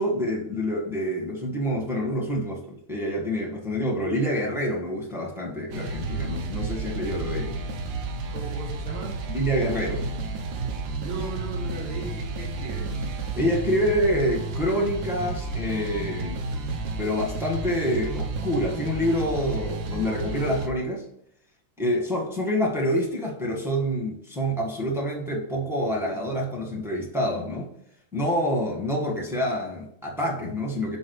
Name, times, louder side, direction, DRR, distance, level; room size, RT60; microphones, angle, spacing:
voice 1, 0.0-7.5 9.3-10.0 13.3-16.4 17.0-21.0 21.8-27.7 28.1-31.0, equal, ahead, -2 dB, 1.1 m, -27 dB
sound 1, 5.7-20.7, right 3 dB, 65° right, 1.2 m, -31 dB
voice 2, 8.3-9.2 11.0-12.9, right 3 dB, 85° right, 1 dB, 2.2 m, -37 dB
5.5 x 5.2 x 4.7 m, 0.74 s
omnidirectional pair, 2.2 m